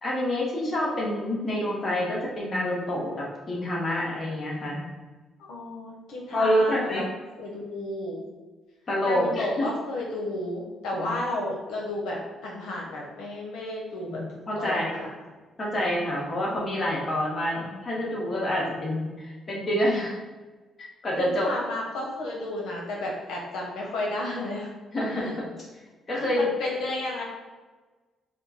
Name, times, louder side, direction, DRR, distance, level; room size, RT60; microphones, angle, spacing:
voice 1, 0.0-4.9 6.3-7.0 8.9-9.7 10.9-11.1 14.1-14.9 15.6-20.2 20.8-21.5 24.9-25.5 26.1-26.5, left 1 dB, 35° left, -4 dB, 1.4 m, -27 dB
voice 2, 5.5-7.1 7.4-8.2 9.0-14.2 14.6-15.1 21.2-24.7 25.1-25.4 26.4-27.2, left 1 dB, 85° left, -2 dB, 0.8 m, -32 dB
4.3 x 2.3 x 4.1 m, 1.3 s
cardioid pair, 90°, 0 cm